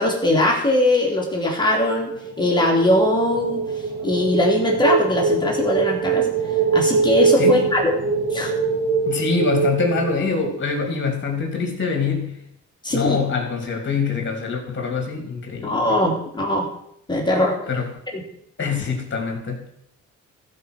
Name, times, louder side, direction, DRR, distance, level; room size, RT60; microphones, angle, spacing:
voice 1, 0.0-2.1 2.4-3.6 4.0-6.3 6.7-7.9 8.3-8.6 12.8-13.2 15.6-16.7 17.1-17.6 18.1-18.2, left 1 dB, 15° left, -2 dB, 3.0 m, -20 dB
sound 1, 1.9-10.8, right 4 dB, 80° right, 4.3 m, -23 dB
voice 2, 9.0-12.4 12.9-16.0 17.7-17.9 18.6-19.6, left 4 dB, 40° left, 2 dB, 3.6 m, -24 dB
15.0 x 5.3 x 6.5 m, 0.72 s
cardioid pair, 90°, 30 cm